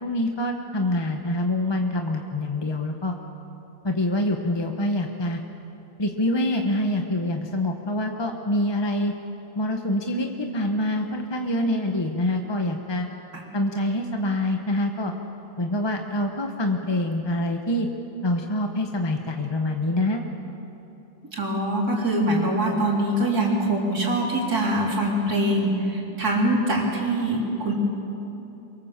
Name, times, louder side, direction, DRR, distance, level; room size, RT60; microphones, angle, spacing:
voice 1, 0.0-3.1 3.8-5.4 6.0-9.1 9.6-13.1 13.5-15.1 15.6-17.9 18.2-20.2, left 1 dB, 20° left, 3 dB, 0.8 m, -25 dB
voice 2, 21.3-27.7, right 1 dB, 50° right, -2 dB, 4.0 m, -23 dB
24.0 x 23.0 x 7.5 m, 3.0 s
omnidirectional pair, 2.1 m